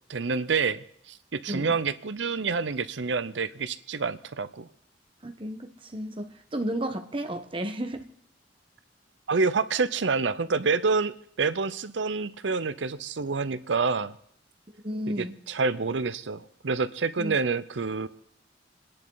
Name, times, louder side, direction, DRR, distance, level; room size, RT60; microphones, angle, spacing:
voice 1, 0.1-4.7 9.3-14.1 15.1-18.1, right 4 dB, 85° right, 14 dB, 0.7 m, -28 dB
voice 2, 1.5-1.8 5.2-8.1 14.8-15.3 17.2-17.4, right 1 dB, 30° right, 6 dB, 1.3 m, -33 dB
28.0 x 10.5 x 4.0 m, 0.68 s
head